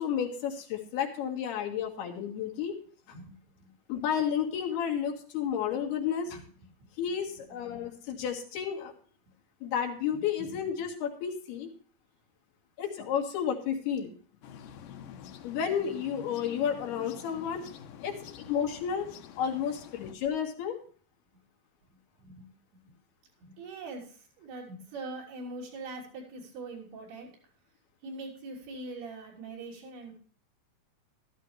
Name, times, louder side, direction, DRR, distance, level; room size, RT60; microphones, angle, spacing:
voice 1, 0.0-2.8 3.9-6.4 7.0-8.9 9.6-11.7 12.8-14.1 15.4-17.6 18.0-19.1 19.4-20.8, left 8 dB, 90° left, 1 dB, 3.8 m, -31 dB
voice 2, 3.1-3.7 6.3-6.4 7.7-7.9 10.4-10.6 22.1-22.5 22.7-22.9 23.4-27.3 28.0-30.2, right 2 dB, 90° right, -3 dB, 5.2 m, -43 dB
sound 1, 14.4-20.1, left 9 dB, 70° left, 2.2 m, -47 dB
13.5 x 13.0 x 3.2 m, 0.43 s
omnidirectional pair, 4.4 m